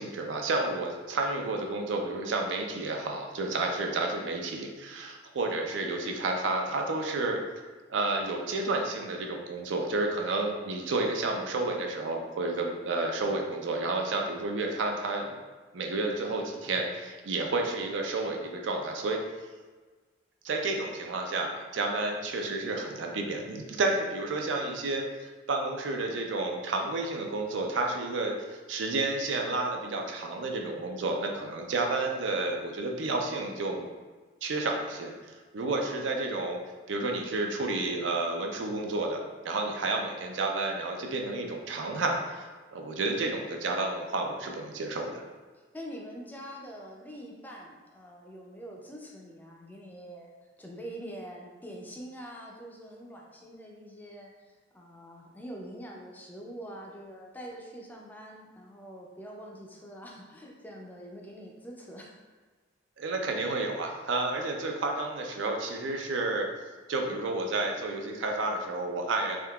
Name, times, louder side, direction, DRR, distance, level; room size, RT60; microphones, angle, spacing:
voice 1, 0.0-7.4 7.9-15.3 15.7-19.2 20.4-28.3 28.7-33.9 34.4-36.6 36.9-42.5 42.7-45.2 63.0-66.5 66.9-69.4, right 2 dB, 70° right, 2 dB, 0.4 m, -31 dB
voice 2, 45.7-62.3, equal, 10° left, -1 dB, 0.4 m, -44 dB
3.6 x 2.7 x 2.2 m, 1.3 s
head